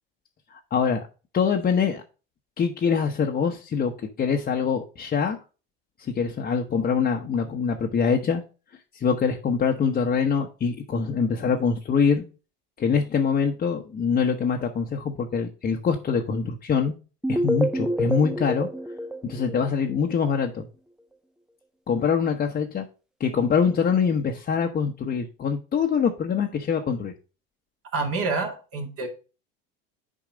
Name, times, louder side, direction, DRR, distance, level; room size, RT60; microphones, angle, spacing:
voice 1, 0.5-1.0 1.3-2.0 2.6-5.4 6.1-8.4 8.9-12.2 12.8-16.9 17.3-18.7 19.2-20.7 21.9-22.9 23.2-27.1, left 6 dB, 30° left, 2 dB, 0.9 m, -24 dB
sound 1, 17.2-20.2, equal, ahead, 0.4 m, -28 dB
voice 2, 27.9-29.1, right 3 dB, 50° right, 3 dB, 2.3 m, -27 dB
7.3 x 4.7 x 4.9 m, 0.34 s
supercardioid pair, 95°, 30 cm